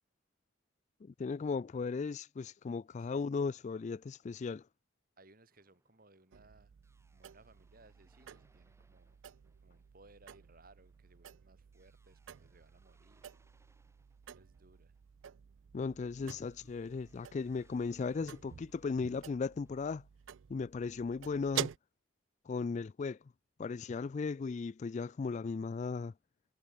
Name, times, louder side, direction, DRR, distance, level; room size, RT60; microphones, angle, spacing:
voice 1, 1.0-4.6 15.7-20.0 20.5-21.7 22.5-23.2 23.6-26.1, left 4 dB, 40° left, 0.3 m, -36 dB
voice 2, 3.0-3.3 5.2-6.7 7.1-9.2 9.6-13.3 14.3-14.9, right 2 dB, 50° right, 6.9 m, -63 dB
sound 1, 5.5-15.6 16.2-19.9, right 2 dB, 15° right, 7.3 m, -74 dB
sound 2, 6.3-21.8, right 9 dB, 80° right, 0.4 m, -48 dB
head